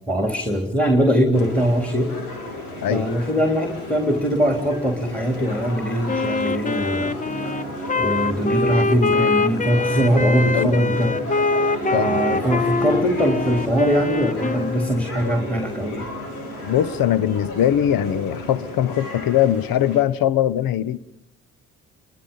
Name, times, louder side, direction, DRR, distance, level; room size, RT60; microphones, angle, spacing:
voice 1, 0.1-2.1 2.9-7.2 8.0-11.1 11.9-16.1, equal, 5° left, 3.3 m, -21 dB
sound 1, 1.3-20.0, left 2 dB, 90° left, 3.1 m, -34 dB
Wind instrument woodwind instrument, 6.1-15.1, left 3 dB, 20° left, 0.9 m, -24 dB
sound 2, 7.3-19.6, right 5 dB, 15° right, 1.4 m, -38 dB
voice 2, 10.5-10.8 11.9-12.4 16.6-21.0, left 11 dB, 55° left, 1.0 m, -21 dB
29.5 x 23.0 x 5.5 m
hypercardioid pair, 45°, 43 cm